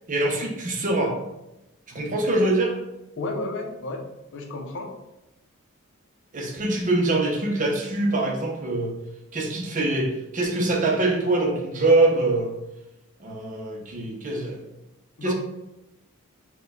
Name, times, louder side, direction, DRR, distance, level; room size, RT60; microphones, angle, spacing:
voice 1, 0.1-1.2 1.9-2.7 6.3-8.9 9.3-12.5 13.2-14.6 15.2-15.3, right 2 dB, 35° right, 0 dB, 0.7 m, -24 dB
voice 2, 3.2-4.0 4.3-5.0 14.0-14.1 15.2-15.3, left 2 dB, 60° left, 2 dB, 0.6 m, -32 dB
4.2 x 2.3 x 3.4 m, 0.93 s
head